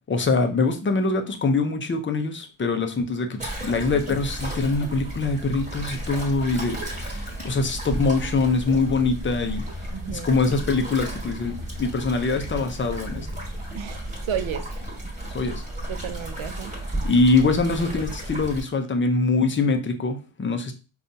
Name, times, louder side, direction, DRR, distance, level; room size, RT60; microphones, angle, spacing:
voice 1, 0.1-9.6 10.1-13.3 15.3-15.6 17.0-20.7, left 3 dB, 25° left, 7 dB, 0.4 m, -23 dB
sound 1, 3.4-18.6, right 1 dB, 15° right, 1.2 m, -33 dB
voice 2, 9.9-10.3 13.7-14.0 14.3-14.8 15.9-16.7, right 8 dB, 70° right, 10 dB, 0.6 m, -32 dB
5.2 x 2.3 x 2.6 m, 0.32 s
wide cardioid pair, 155°, 49 cm